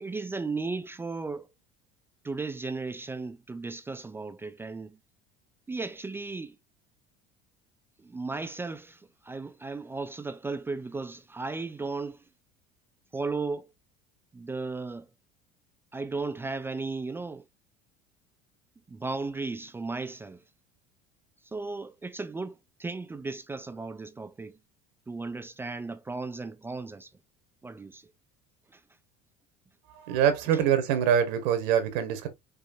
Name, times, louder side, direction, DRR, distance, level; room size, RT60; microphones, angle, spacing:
voice 1, 0.0-1.5 2.2-5.0 5.7-6.6 8.0-12.2 13.1-13.7 14.3-15.1 15.9-17.4 18.9-20.4 21.4-24.6 25.1-27.1 27.6-28.1 28.7-28.8, right 3 dB, 10° right, 0.3 m, -35 dB
voice 2, 29.9-32.3, right 9 dB, 85° right, 1.3 m, -24 dB
5.5 x 3.2 x 2.6 m
cardioid pair, 125°, 19 cm